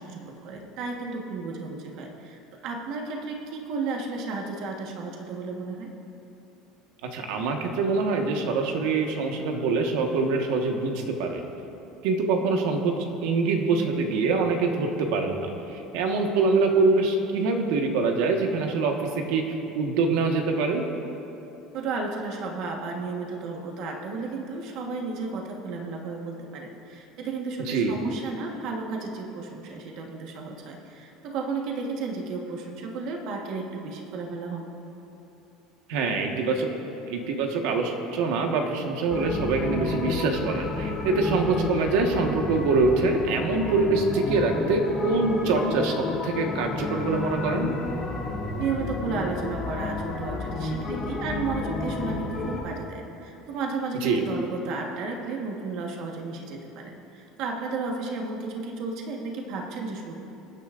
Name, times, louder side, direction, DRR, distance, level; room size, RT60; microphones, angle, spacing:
voice 1, 0.0-5.9 21.7-34.7 48.6-60.2, right 4 dB, 50° right, 1 dB, 1.3 m, -33 dB
voice 2, 7.1-11.4 12.0-12.9 13.2-15.5 15.9-18.9 19.3-19.4 19.7-20.9 27.7-28.0 35.9-36.7 37.1-47.7 54.0-54.2, right 3 dB, 70° right, 3 dB, 1.4 m, -24 dB
sound 1, 39.1-52.6, left 3 dB, 20° left, 1.4 m, -31 dB
25.0 x 9.8 x 2.5 m, 2.9 s
cardioid pair, 170°, 0 cm